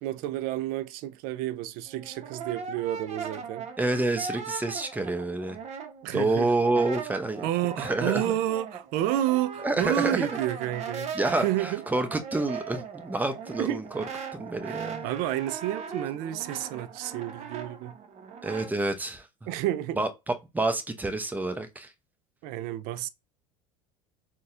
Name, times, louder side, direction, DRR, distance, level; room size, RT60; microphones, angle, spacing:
voice 1, 0.0-3.7 6.0-6.5 7.4-11.8 13.6-13.8 14.7-18.0 19.5-20.0 22.4-23.1, right 13 dB, 60° right, 0.4 m, -30 dB
Brass instrument, 1.9-6.3 6.6-18.7, right 6 dB, 40° right, 0.8 m, -39 dB
voice 2, 3.8-5.6 6.1-7.5 7.8-8.2 9.6-10.4 11.1-14.0 14.3-15.1 18.4-19.2 20.0-20.1 20.5-21.9, right 2 dB, 10° right, 0.7 m, -28 dB
4.0 x 2.3 x 2.5 m
hypercardioid pair, 75°, 17 cm